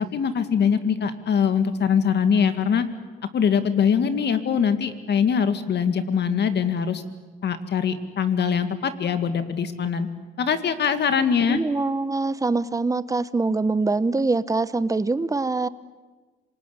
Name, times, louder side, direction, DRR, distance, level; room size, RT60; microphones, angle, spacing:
voice 1, 0.0-2.9 3.3-7.0 7.4-10.1 10.4-11.6, left 7 dB, 60° left, 10 dB, 2.1 m, -22 dB
voice 2, 11.5-15.7, right 3 dB, 15° right, 15 dB, 1.0 m, -24 dB
26.5 x 19.0 x 9.7 m, 1.3 s
cardioid pair, 90°, 20 cm